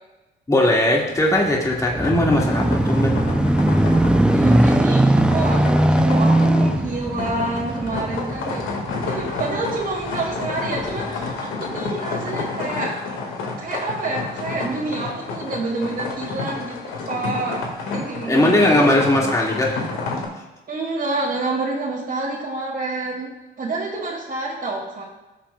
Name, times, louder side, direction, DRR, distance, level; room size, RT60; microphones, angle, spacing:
voice 1, 0.5-3.2 18.3-19.8, left 1 dB, 15° left, -2 dB, 1.9 m, -18 dB
sound 1, 1.4-10.2 10.8-10.9, right 1 dB, 5° right, 0.4 m, -19 dB
sound 2, 2.0-20.2, left 3 dB, 90° left, 1.9 m, -30 dB
voice 2, 4.3-8.7 9.0-13.0 13.6-17.6 17.9-18.6 20.7-23.3 23.6-25.0, right 2 dB, 50° right, -5 dB, 2.2 m, -28 dB
16.5 x 7.3 x 2.3 m, 1.1 s
cardioid pair, 90°, 20 cm